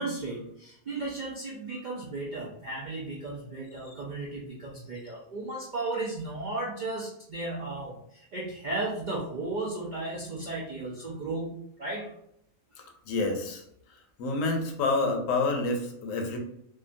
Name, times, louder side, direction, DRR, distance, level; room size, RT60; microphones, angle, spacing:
voice 1, 0.0-12.1 12.8-12.9, right 2 dB, 85° right, -4 dB, 0.4 m, -35 dB
voice 2, 13.1-13.6 14.2-16.4, left 3 dB, 75° left, 3 dB, 1.0 m, -28 dB
2.7 x 2.2 x 2.5 m, 0.73 s
omnidirectional pair, 1.4 m